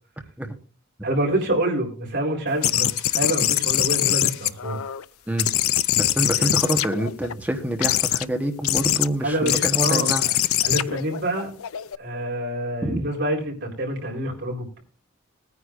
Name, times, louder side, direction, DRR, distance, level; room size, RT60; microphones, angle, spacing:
voice 1, 1.0-4.8 6.4-6.8 9.2-10.3 10.6-11.5 12.0-14.8, right 1 dB, 55° right, -1 dB, 4.0 m, -27 dB
sound 1, 2.6-5.0 5.4-7.3 7.8-8.3 8.6-9.1 9.5-12.0, left 13 dB, 85° left, 0.5 m, -23 dB
voice 2, 6.0-10.3 12.8-13.1, right 1 dB, 5° right, 3 dB, 1.1 m, -26 dB
20.0 x 9.6 x 2.5 m, 0.39 s
head